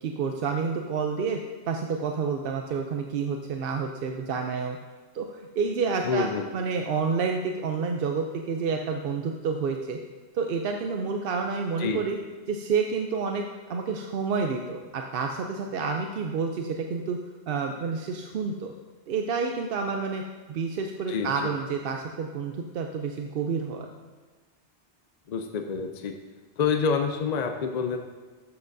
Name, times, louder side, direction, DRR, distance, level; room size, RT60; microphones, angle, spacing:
voice 1, 0.0-1.4 1.7-4.8 5.1-10.0 10.3-12.2 12.5-13.4 13.7-17.2 17.5-18.7 19.1-20.2 20.5-23.9, right 5 dB, 60° right, 3 dB, 0.7 m, -29 dB
voice 2, 6.0-6.4 11.8-12.0 21.1-21.5 25.3-26.2 26.6-28.0, left 5 dB, 55° left, 5 dB, 0.5 m, -27 dB
12.5 x 7.5 x 2.6 m, 1.4 s
omnidirectional pair, 1.2 m